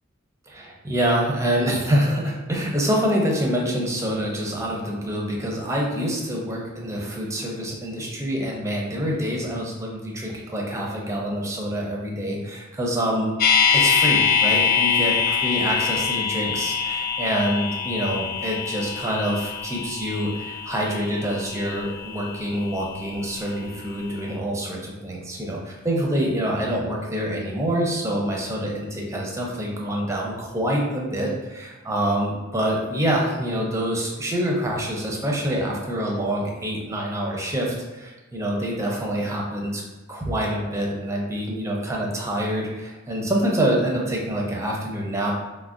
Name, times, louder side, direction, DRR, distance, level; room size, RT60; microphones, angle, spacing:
voice 1, 0.5-13.3 13.7-39.8 40.1-45.3, equal, 15° right, -1 dB, 0.5 m, -26 dB
sound 1, 13.4-23.4 23.7-23.8, left 6 dB, 45° left, 0.3 m, -24 dB
4.4 x 2.1 x 2.5 m, 1.1 s
head